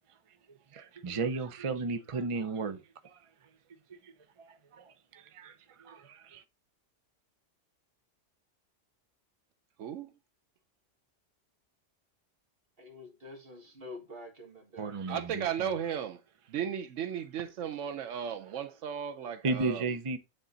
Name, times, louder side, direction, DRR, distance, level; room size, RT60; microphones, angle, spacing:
voice 1, 0.5-3.3 3.9-4.1 4.4-6.4 14.8-15.5 19.4-20.2, right 3 dB, 30° right, 0.7 m, -35 dB
voice 2, 9.8-10.2 15.1-16.2 16.5-19.8, right 8 dB, 85° right, 1.0 m, -35 dB
voice 3, 12.8-15.0, left 2 dB, 50° right, 2.1 m, -47 dB
10.0 x 3.8 x 3.9 m
omnidirectional pair, 1.2 m